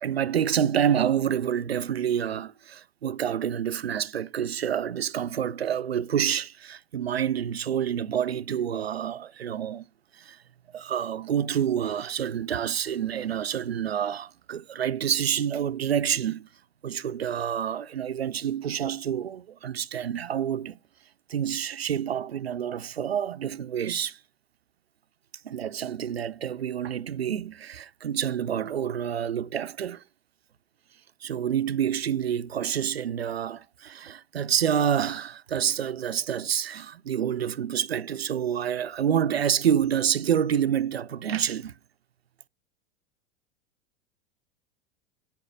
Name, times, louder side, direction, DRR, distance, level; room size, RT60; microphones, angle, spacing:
voice 1, 0.0-9.9 10.1-10.4 10.7-16.5 16.8-20.8 21.3-24.2 25.4-30.0 31.2-41.7, right 9 dB, 80° right, 0.5 m, -28 dB
8.8 x 5.8 x 5.9 m
figure-of-eight pair, 85°, 30 cm